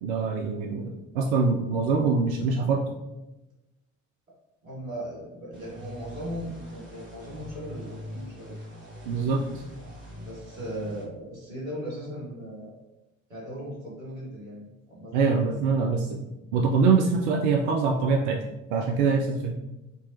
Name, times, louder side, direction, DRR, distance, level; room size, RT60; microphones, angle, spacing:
voice 1, 0.0-2.8 9.1-9.6 15.1-18.4 18.7-19.6, right 4 dB, 60° right, 1 dB, 0.5 m, -24 dB
voice 2, 4.6-8.6 10.1-12.8 13.3-15.1, equal, 85° right, -7 dB, 1.2 m, -38 dB
sound 1, 5.5-11.0, equal, 30° right, 1.3 m, -43 dB
3.3 x 2.9 x 2.9 m, 0.98 s
figure-of-eight pair, 50°, 39 cm